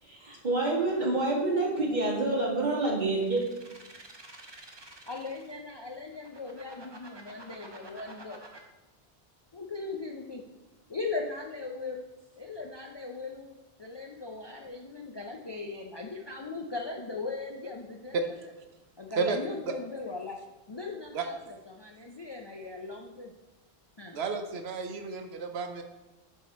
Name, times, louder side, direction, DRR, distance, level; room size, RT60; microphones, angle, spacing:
voice 1, 0.0-3.4, right 2 dB, 45° right, -2 dB, 1.7 m, -27 dB
sound 1, 3.1-5.6 6.1-8.6, right 2 dB, 30° right, 0.8 m, -49 dB
voice 2, 5.1-8.4 9.5-10.4 10.9-12.0 12.4-18.5 19.0-20.4 20.7-23.3 24.0-24.2, left 3 dB, 40° left, 2 dB, 0.4 m, -39 dB
voice 3, 24.1-25.8, right 4 dB, 80° right, 6 dB, 1.0 m, -31 dB
10.0 x 3.7 x 4.1 m, 1.1 s
omnidirectional pair, 1.1 m